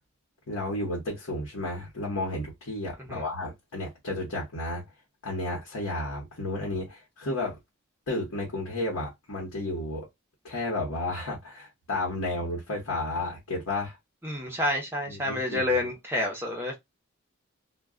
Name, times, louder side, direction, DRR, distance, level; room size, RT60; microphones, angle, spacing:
voice 1, 0.5-4.8 5.2-7.6 8.1-10.1 10.4-14.0 15.1-15.9, left 2 dB, 85° left, 1.0 m, -32 dB
voice 2, 14.2-16.8, left 1 dB, 10° right, 0.8 m, -29 dB
2.3 x 2.2 x 3.5 m
head